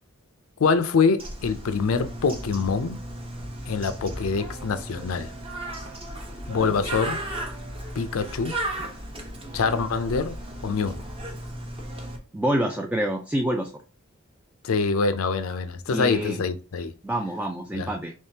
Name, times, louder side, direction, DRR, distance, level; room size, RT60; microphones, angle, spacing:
voice 1, 0.6-3.0 3.7-5.3 6.5-7.2 8.0-8.6 9.5-10.4 10.6-11.0 14.6-16.9 17.7-17.9, left 5 dB, 80° left, 0.5 m, -25 dB
Bird, 1.2-12.2, right 1 dB, 25° right, 0.9 m, -35 dB
voice 2, 12.3-13.7 15.9-16.4 17.0-18.1, right 1 dB, 5° right, 0.3 m, -27 dB
3.5 x 3.1 x 2.7 m
head